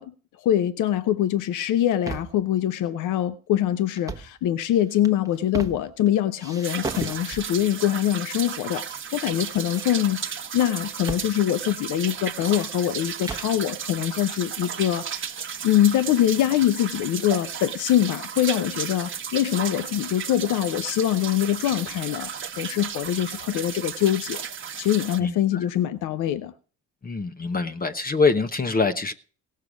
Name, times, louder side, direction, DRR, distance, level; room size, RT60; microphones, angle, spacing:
voice 1, 0.0-15.3 15.6-22.3 22.6-24.5 24.8-26.5, left 11 dB, 85° left, 0.7 m, -24 dB
sound 1, 1.7-2.5 3.9-4.4 4.9-6.1 6.4-7.7 8.4-9.0 9.2-10.3 11.1-11.3 11.6-11.7 12.1-13.6, right 3 dB, 10° right, 1.0 m, -37 dB
sound 2, 6.6-25.2, right 7 dB, 40° right, 1.1 m, -34 dB
voice 2, 27.0-29.1, left 4 dB, 30° left, 0.9 m, -24 dB
17.0 x 6.6 x 6.2 m
cardioid pair, 90°, 30 cm